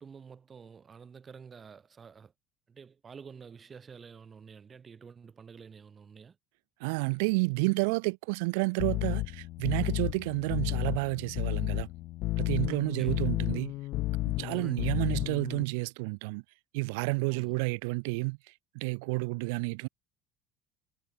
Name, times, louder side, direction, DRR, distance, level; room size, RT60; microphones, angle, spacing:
voice 1, 0.0-2.3 2.7-6.4 12.7-13.2 14.5-15.0 17.3-17.6, right 6 dB, 20° right, 1.9 m, -49 dB
voice 2, 6.8-11.9 12.4-13.7 14.4-16.4 16.7-19.9, right 29 dB, 85° right, 0.7 m, -30 dB
sound 1, 8.8-15.6, left 18 dB, 50° left, 0.5 m, -32 dB
cardioid pair, 160°, 0 cm